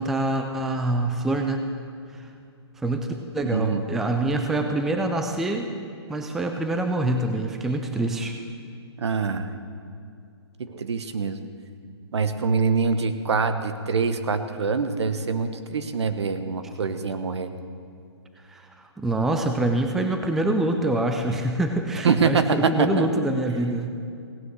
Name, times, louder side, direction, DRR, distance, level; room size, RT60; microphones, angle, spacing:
voice 1, 0.0-1.6 2.8-3.1 3.3-5.7 6.1-8.4 18.5-18.7 19.0-23.9, right 2 dB, ahead, 5 dB, 0.3 m, -25 dB
voice 2, 3.5-3.8 9.0-9.5 10.6-11.4 12.1-17.5 22.0-23.1, right 5 dB, 75° right, 10 dB, 1.2 m, -24 dB
16.5 x 9.6 x 6.4 m, 2.4 s
hypercardioid pair, 155°, 14 cm